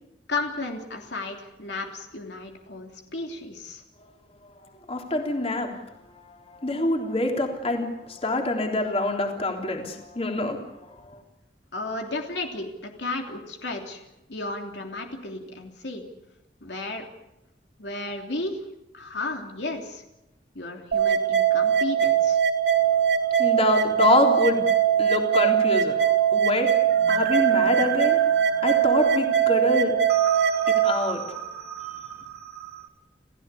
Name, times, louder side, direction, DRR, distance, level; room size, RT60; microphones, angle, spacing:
voice 1, 0.3-3.8 11.7-14.0 14.3-16.0 16.6-17.1 17.8-18.6 18.9-20.0 20.5-22.4, left 2 dB, 75° left, 2 dB, 3.2 m, -33 dB
voice 2, 4.4-11.2 22.8-24.7 25.0-30.3 30.6-31.4, left 2 dB, 35° left, 2 dB, 3.6 m, -27 dB
sound 1, 20.9-30.9, right 9 dB, 90° right, 2.7 m, -21 dB
sound 2, 26.9-32.9, right 9 dB, 65° right, 2.5 m, -35 dB
29.5 x 16.0 x 8.5 m, 0.92 s
head